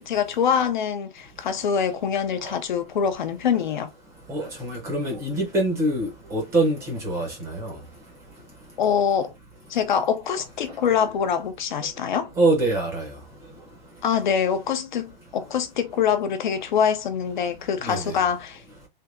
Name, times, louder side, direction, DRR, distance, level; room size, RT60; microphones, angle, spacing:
voice 1, 0.0-3.9 8.8-9.3 9.7-12.3 14.0-18.6, left 7 dB, 55° left, 0.6 m, -24 dB
voice 2, 4.3-7.7 12.4-13.0 17.9-18.1, right 2 dB, 10° right, 0.7 m, -24 dB
3.4 x 2.7 x 2.5 m
hypercardioid pair, 165°, 29 cm